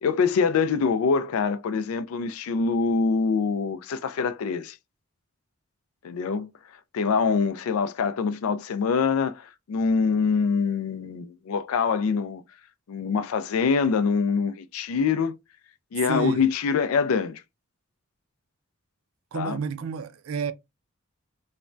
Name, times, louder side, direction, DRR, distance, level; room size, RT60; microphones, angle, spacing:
voice 1, 0.0-4.8 6.0-6.5 6.9-12.4 12.9-15.3 15.9-17.4 19.3-19.6, left 5 dB, 85° left, 0.4 m, -24 dB
voice 2, 16.1-16.5 19.3-20.5, right 6 dB, 75° right, 0.4 m, -30 dB
3.1 x 2.1 x 2.5 m
head